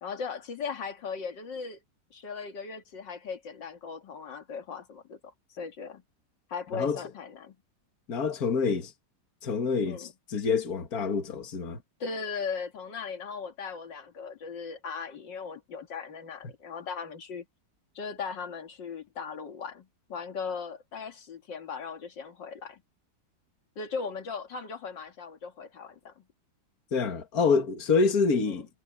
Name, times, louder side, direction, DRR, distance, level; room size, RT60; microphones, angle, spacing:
voice 1, 0.0-1.8 2.1-6.0 6.5-7.6 9.9-10.1 12.0-17.5 17.9-22.8 23.8-26.2 28.5-28.6, left 5 dB, 80° left, 2.6 m, -38 dB
voice 2, 8.1-8.9 9.4-11.8 26.9-28.7, left 5 dB, 55° left, 2.3 m, -27 dB
omnidirectional pair, 1.9 m